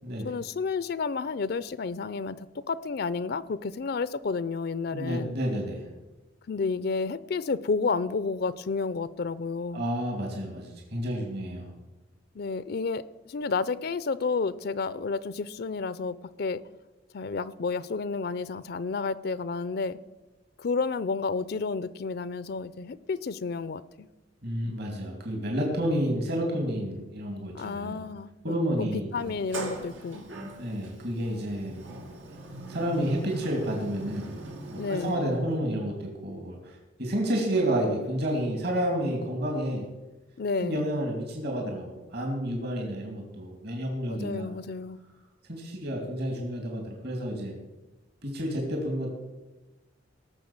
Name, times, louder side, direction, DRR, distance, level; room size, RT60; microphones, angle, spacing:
voice 1, 0.2-5.3 6.5-9.9 12.3-16.6 17.1-20.0 20.6-24.1 27.5-28.3 28.8-28.9 29.1-30.2 34.8-35.3 40.4-40.8 44.1-45.0, left 4 dB, 55° left, 17 dB, 0.5 m, -31 dB
voice 2, 4.9-5.8 9.7-11.7 24.4-28.0 28.4-29.3 30.6-32.0 32.7-34.3 34.7-39.8 40.6-44.5 45.5-47.6 48.2-49.1, equal, 60° right, 1 dB, 2.7 m, -30 dB
Sliding door, 29.2-35.1, right 1 dB, 90° right, 2.4 m, -41 dB
18.0 x 6.9 x 7.3 m, 1.1 s
head